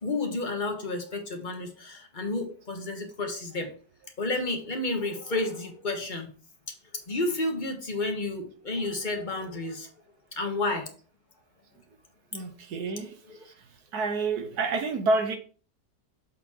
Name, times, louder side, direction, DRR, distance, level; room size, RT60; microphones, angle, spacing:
voice 1, 0.0-3.7 4.2-6.3 7.1-9.9 10.4-10.9 13.3-13.4, left 2 dB, 30° left, 1.3 m, -31 dB
voice 2, 12.3-13.6 13.9-15.4, right 3 dB, 70° right, 1.4 m, -29 dB
7.3 x 4.3 x 4.3 m
omnidirectional pair, 1.8 m